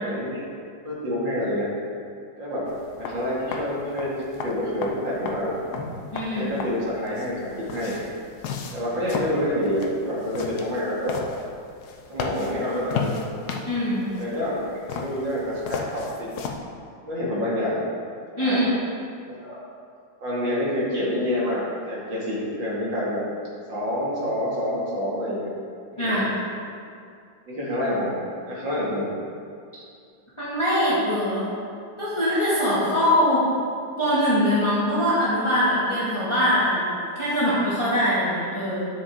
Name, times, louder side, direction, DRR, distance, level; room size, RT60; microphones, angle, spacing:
voice 1, 0.0-0.4 0.8-1.7 2.4-2.7 3.0-5.5 6.3-7.9 8.7-11.2 12.1-13.1 14.2-16.3 17.1-17.8 18.4-18.6 19.2-19.6 20.2-23.2 23.7-25.5 25.9-26.2 27.5-28.1 28.5-29.1 32.8-33.0, left 1 dB, 70° right, -7 dB, 3.0 m, -27 dB
sound 1, 2.6-16.6, left 5 dB, 65° left, 1.1 m, -35 dB
voice 2, 6.1-6.5 13.7-14.1 18.4-18.7 26.0-26.3 30.4-31.4 32.0-33.5 34.0-38.9, equal, 15° left, -10 dB, 2.1 m, -22 dB
9.9 x 6.9 x 3.8 m, 2.3 s
omnidirectional pair, 2.1 m